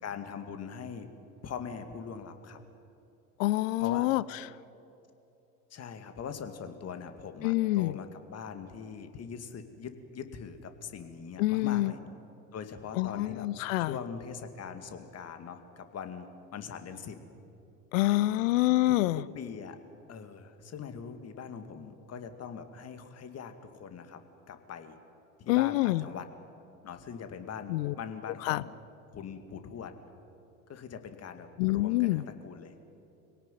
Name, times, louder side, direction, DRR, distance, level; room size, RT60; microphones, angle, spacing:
voice 1, 0.0-1.1 1.4-2.6 3.8-4.1 5.7-12.0 12.5-13.5 13.8-16.3 16.5-17.2 18.0-18.5 18.9-19.8 20.1-24.2 24.5-25.0 25.4-26.3 26.8-28.7 29.1-29.9 30.7-32.8, left 6 dB, 30° left, 8 dB, 2.3 m, -42 dB
voice 2, 3.4-4.2 7.4-7.9 11.4-11.9 13.0-13.9 17.9-19.2 25.5-26.0 27.7-27.9 28.5-28.6 31.6-32.2, left 18 dB, 55° left, 20 dB, 0.6 m, -26 dB
25.5 x 17.5 x 9.2 m, 2.9 s
figure-of-eight pair, 75°, 46 cm